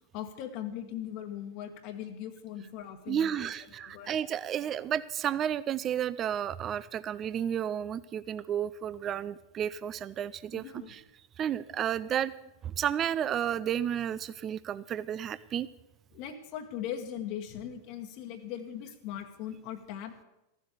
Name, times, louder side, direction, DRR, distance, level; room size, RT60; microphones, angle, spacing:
voice 1, 0.1-3.5 3.8-4.1 10.5-10.9 16.1-20.2, left 10 dB, 45° left, 6 dB, 1.2 m, -39 dB
voice 2, 3.1-11.0 11.4-12.3 12.6-15.7, right 9 dB, 30° right, 17 dB, 0.4 m, -32 dB
14.5 x 7.6 x 8.2 m, 0.93 s
figure-of-eight pair, 90°, 0 cm